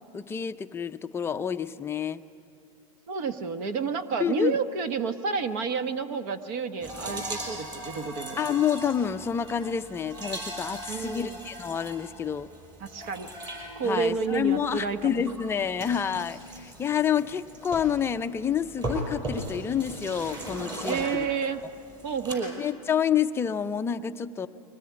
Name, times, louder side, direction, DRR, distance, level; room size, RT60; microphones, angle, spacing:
voice 1, 0.1-2.2 4.2-4.6 8.4-12.5 13.8-21.3 22.6-24.5, left 8 dB, 15° left, 9 dB, 0.5 m, -28 dB
voice 2, 3.1-8.4 10.9-11.4 12.8-13.3 13.7-15.2 20.9-21.6 22.0-22.6, right 5 dB, 50° right, 10 dB, 1.3 m, -30 dB
sound 1, 6.8-22.4, right 1 dB, 25° right, 5.5 m, -39 dB
23.0 x 19.0 x 9.6 m, 2.5 s
supercardioid pair, 140°, 19 cm